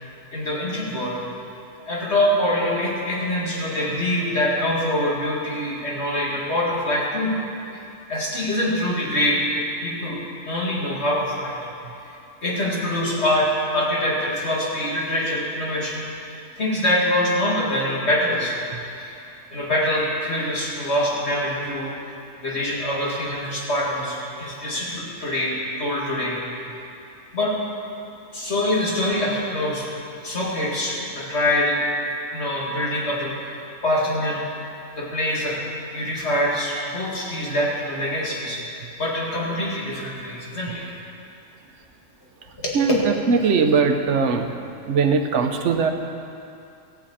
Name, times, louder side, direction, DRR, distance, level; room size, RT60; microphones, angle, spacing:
voice 1, 0.3-1.2 1.9-7.3 7.7-7.8 8.1-10.2 10.5-11.6 12.4-16.2 16.5-18.5 19.0-19.2 19.5-21.9 22.4-26.6 27.3-27.5 28.3-29.9 30.2-31.8 32.3-34.4 35.0-35.6 35.9-41.0 42.6-42.8, left 1 dB, 50° left, -5 dB, 2.4 m, -24 dB
voice 2, 43.3-44.5 44.9-45.9, right 5 dB, 60° right, 5 dB, 1.1 m, -20 dB
14.0 x 5.2 x 8.7 m, 2.6 s
omnidirectional pair, 1.4 m